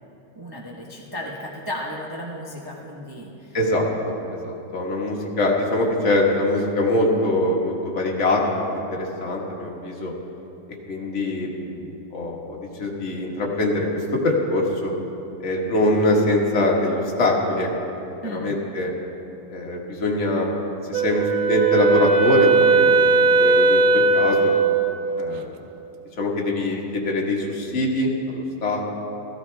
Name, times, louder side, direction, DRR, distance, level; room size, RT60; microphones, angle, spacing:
voice 1, 0.4-3.6 18.2-18.5, equal, 25° right, -3 dB, 0.5 m, -34 dB
voice 2, 3.5-10.1 10.9-14.9 15.4-17.7 18.2-18.9 19.5-24.5 25.2-25.5 26.2-28.8, left 1 dB, 35° left, -2 dB, 1.7 m, -23 dB
Wind instrument woodwind instrument, 20.9-25.0, right 4 dB, 75° right, 0.8 m, -18 dB
15.5 x 14.5 x 3.4 m, 2.9 s
omnidirectional pair, 2.2 m